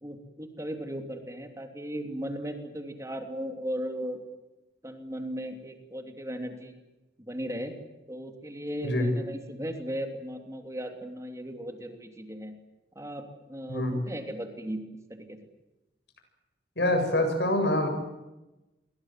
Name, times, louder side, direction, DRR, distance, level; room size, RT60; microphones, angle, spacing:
voice 1, 0.0-4.2 4.8-6.7 7.2-7.7 8.1-12.6 12.9-13.2 13.5-14.8 15.3-15.4, equal, 20° right, 5 dB, 3.1 m, -36 dB
voice 2, 16.8-17.9, left 1 dB, 75° left, 6 dB, 7.2 m, -25 dB
28.5 x 23.0 x 7.6 m, 1.0 s
head